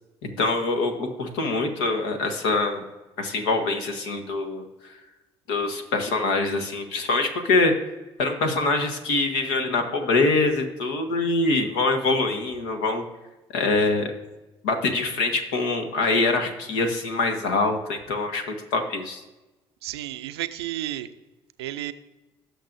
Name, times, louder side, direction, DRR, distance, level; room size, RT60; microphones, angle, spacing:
voice 1, 0.2-2.8 3.2-4.6 5.5-7.7 8.2-13.0 13.5-14.1 14.6-19.2, left 3 dB, 75° left, 5 dB, 1.3 m, -24 dB
voice 2, 19.8-21.1 21.6-21.9, right 14 dB, 85° right, 11 dB, 0.5 m, -32 dB
17.0 x 6.6 x 2.6 m, 1.1 s
hypercardioid pair, 55°, 13 cm